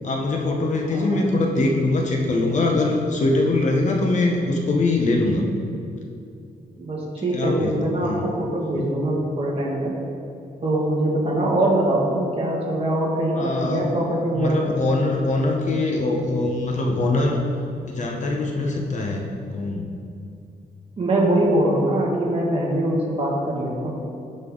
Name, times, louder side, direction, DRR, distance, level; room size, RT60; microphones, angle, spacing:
voice 1, 0.0-5.5 7.2-7.7 8.0-8.3 13.3-13.9 14.3-17.4 17.9-19.2 19.5-19.9, left 2 dB, 45° left, 1 dB, 1.1 m, -22 dB
voice 2, 0.9-1.3 6.8-9.9 10.6-14.6 21.0-23.9, right 1 dB, 35° right, -4 dB, 2.1 m, -23 dB
16.0 x 5.6 x 4.0 m, 2.5 s
wide cardioid pair, 150°, 17 cm